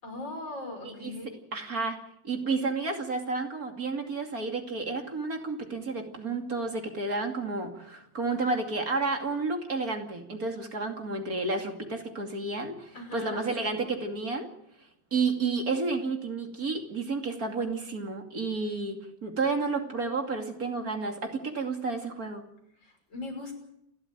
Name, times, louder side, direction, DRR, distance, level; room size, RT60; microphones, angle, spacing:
voice 1, 0.0-1.4 12.9-13.8 22.7-23.5, left 2 dB, 75° left, 3 dB, 6.7 m, -40 dB
voice 2, 1.5-2.0 2.2-14.5 15.1-22.5, right 3 dB, 50° right, 4 dB, 3.1 m, -31 dB
29.0 x 13.0 x 9.3 m, 0.78 s
omnidirectional pair, 2.0 m